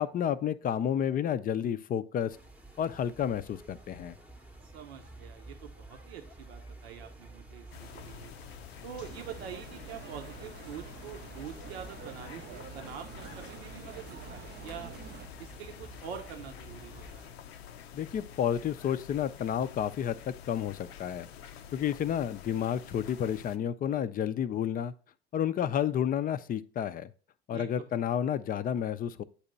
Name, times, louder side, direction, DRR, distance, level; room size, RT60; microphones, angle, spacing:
voice 1, 0.0-2.4 2.8-4.2 17.9-21.3 21.7-24.9 25.3-27.1 27.5-29.2, left 9 dB, 30° left, 0.4 m, -31 dB
sound 1, 2.3-17.3, right 2 dB, 5° right, 0.8 m, -51 dB
voice 2, 4.7-8.4 8.8-15.0 15.4-17.4 27.5-27.9, right 8 dB, 80° right, 0.9 m, -45 dB
sound 2, 7.7-23.6, left 8 dB, 80° left, 0.5 m, -48 dB
sound 3, 9.0-15.3, right 9 dB, 35° right, 0.5 m, -48 dB
8.1 x 2.9 x 5.2 m
hypercardioid pair, 75°, 31 cm